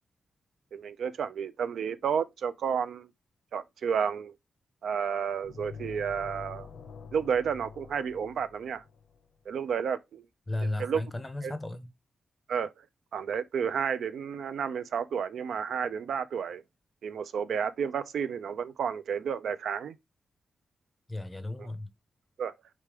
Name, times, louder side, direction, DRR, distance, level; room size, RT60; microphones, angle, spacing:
voice 1, 0.7-3.1 3.5-4.3 4.8-6.7 7.1-8.8 9.5-10.2 10.8-11.0 11.4-11.5 12.5-12.7 13.1-16.6 17.0-20.0 22.4-22.5, right 7 dB, 80° right, 0.4 m, -31 dB
sound 1, 5.4-9.3, left 5 dB, 70° left, 0.6 m, -46 dB
voice 2, 10.5-11.9 21.1-21.9, left 2 dB, 10° left, 0.6 m, -34 dB
4.8 x 3.3 x 3.4 m
wide cardioid pair, 165°, 0 cm